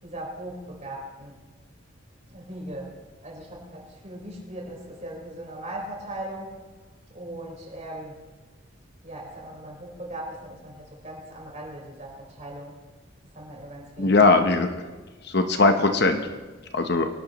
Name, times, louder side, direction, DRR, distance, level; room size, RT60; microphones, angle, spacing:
voice 1, 0.0-1.4 2.3-6.6 7.1-8.2 9.0-12.8 13.2-14.4, right 1 dB, 35° right, -2 dB, 4.7 m, -39 dB
voice 2, 14.0-14.8 15.3-16.2 16.7-17.1, left 3 dB, 55° left, 6 dB, 1.0 m, -20 dB
24.5 x 12.0 x 3.1 m, 1.3 s
head